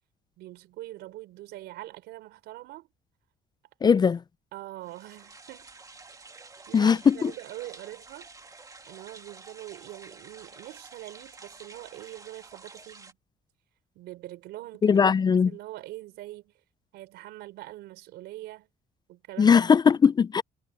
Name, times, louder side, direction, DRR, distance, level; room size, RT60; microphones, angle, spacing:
voice 1, 0.4-2.9 4.5-5.8 6.3-8.3 8.8-13.2 13.9-15.0 15.5-16.5 16.9-18.7 19.1-19.6, right 16 dB, 85° right, 4.4 m, -43 dB
voice 2, 3.8-4.2 6.7-7.3 14.8-15.5 19.4-20.4, left 6 dB, 25° left, 0.3 m, -19 dB
sound 1, 4.8-13.1, right 3 dB, 20° right, 2.0 m, -49 dB
cardioid pair, 110°, 17 cm